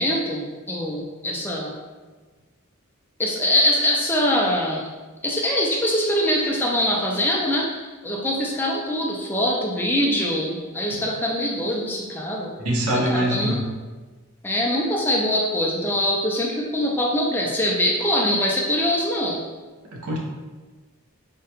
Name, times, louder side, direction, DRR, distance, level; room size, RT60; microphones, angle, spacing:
voice 1, 0.0-1.8 3.2-4.9 5.2-12.5 12.9-13.6 14.4-19.4, left 1 dB, 10° left, -2 dB, 0.3 m, -23 dB
voice 2, 12.6-13.7 19.9-20.2, right 1 dB, 85° right, -1 dB, 0.6 m, -24 dB
3.6 x 2.2 x 2.8 m, 1.3 s
head